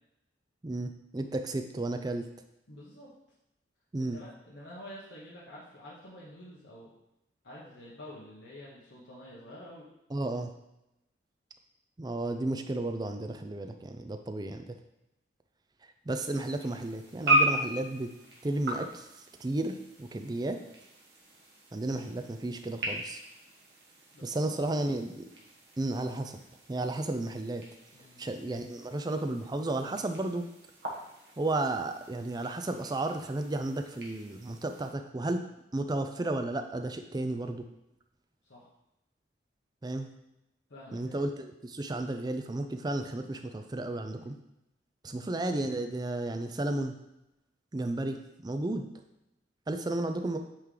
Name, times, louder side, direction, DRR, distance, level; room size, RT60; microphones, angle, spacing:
voice 1, 0.6-2.3 3.9-4.2 10.1-10.5 12.0-14.7 16.1-18.1 18.4-19.1 19.4-20.6 21.7-23.2 24.2-25.3 25.8-26.4 26.7-27.6 28.2-30.5 31.4-35.4 35.7-37.7 39.8-40.1 40.9-44.4 45.0-47.0 47.7-48.9 49.7-50.4, right 2 dB, 20° right, 6 dB, 0.4 m, -33 dB
voice 2, 2.7-3.1 4.0-6.9 7.4-9.9 24.1-24.7 27.9-28.2 38.4-38.7 40.7-41.2 43.9-44.4 45.0-45.4, left 1 dB, 90° left, -6 dB, 1.2 m, -49 dB
sound 1, 16.1-34.9, right 1 dB, 65° right, 1.4 m, -37 dB
8.8 x 3.2 x 3.8 m, 0.88 s
head